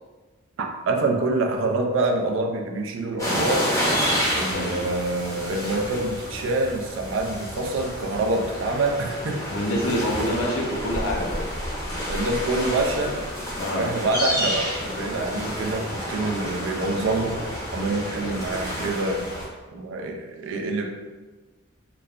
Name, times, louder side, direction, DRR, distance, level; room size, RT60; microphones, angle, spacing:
voice 1, 0.6-3.7 4.3-9.4 10.0-10.1 12.1-13.2 13.7-17.4 17.7-19.3 19.7-20.9, right 2 dB, 75° right, 2 dB, 0.4 m, -26 dB
sound 1, 3.2-19.4, equal, 15° left, 0.6 m, -29 dB
voice 2, 4.4-4.9 9.5-11.5 13.6-13.9, equal, 80° left, 0 dB, 0.5 m, -27 dB
3.0 x 2.1 x 2.3 m, 1.3 s
head